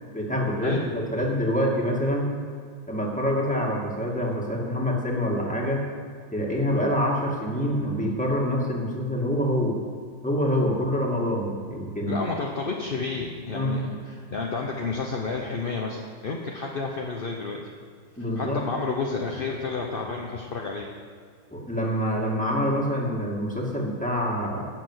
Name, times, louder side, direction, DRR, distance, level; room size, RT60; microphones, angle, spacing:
voice 1, 0.1-2.3 2.9-5.8 6.3-9.8 10.2-12.2 13.5-13.8 18.2-18.6 21.5-24.7, equal, 5° left, -2 dB, 1.9 m, -26 dB
voice 2, 12.1-17.6 18.4-20.9, left 4 dB, 40° left, -1 dB, 0.8 m, -30 dB
12.0 x 6.7 x 8.1 m, 2.1 s
omnidirectional pair, 2.1 m